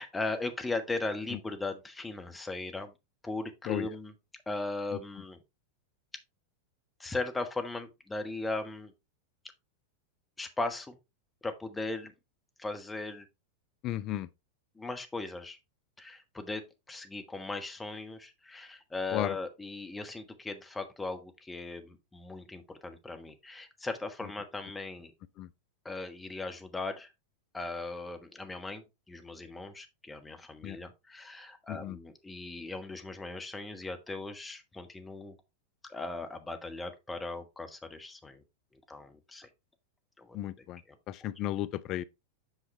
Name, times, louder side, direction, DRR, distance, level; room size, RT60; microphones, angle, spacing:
voice 1, 0.0-2.9 3.2-4.1 4.5-5.4 7.0-8.9 10.4-11.0 11.4-12.1 12.6-13.3 14.7-15.6 16.0-25.1 25.8-27.1 27.5-35.3 35.9-38.4 38.9-39.5 40.2-41.0, left 3 dB, 10° left, 1.3 m, -38 dB
voice 2, 13.8-14.3 19.1-19.4 25.4-25.5 30.6-30.8 31.7-32.0 40.3-40.8 41.1-42.0, left 13 dB, 35° left, 0.5 m, -34 dB
8.1 x 5.7 x 3.2 m
figure-of-eight pair, 90°, 0 cm